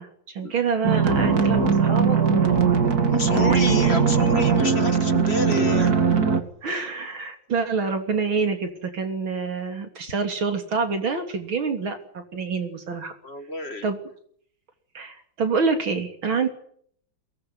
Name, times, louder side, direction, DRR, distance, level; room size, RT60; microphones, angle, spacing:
voice 1, 0.0-2.8 3.3-4.0 5.7-5.9 6.6-13.1 13.8-14.0 14.9-16.5, right 5 dB, 80° right, 6 dB, 3.9 m, -27 dB
sound 1, 0.8-6.4, right 5 dB, 50° right, 2.6 m, -20 dB
voice 2, 3.1-5.9 13.2-13.9, left 2 dB, 35° left, 10 dB, 1.9 m, -29 dB
22.5 x 19.0 x 9.7 m, 0.63 s
omnidirectional pair, 2.2 m